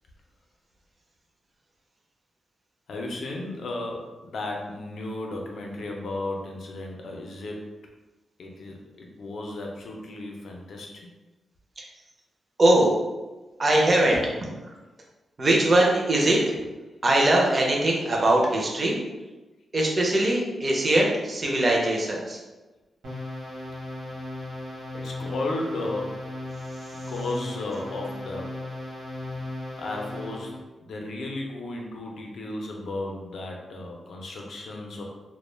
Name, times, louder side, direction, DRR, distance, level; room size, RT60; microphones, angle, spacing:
voice 1, 2.9-7.6 8.4-11.1 24.9-26.2 27.1-28.5 29.8-30.5 30.8-35.0, left 2 dB, 65° left, 0 dB, 0.4 m, -34 dB
voice 2, 12.6-13.0 13.6-14.4 14.7-14.8 15.4-16.5 17.0-19.0 19.7-22.4, right 1 dB, 30° right, -2 dB, 0.4 m, -21 dB
sound 1, 23.0-30.6, left 1 dB, 70° right, 0.8 m, -36 dB
2.2 x 2.1 x 3.1 m, 1.1 s
wide cardioid pair, 160°, 0 cm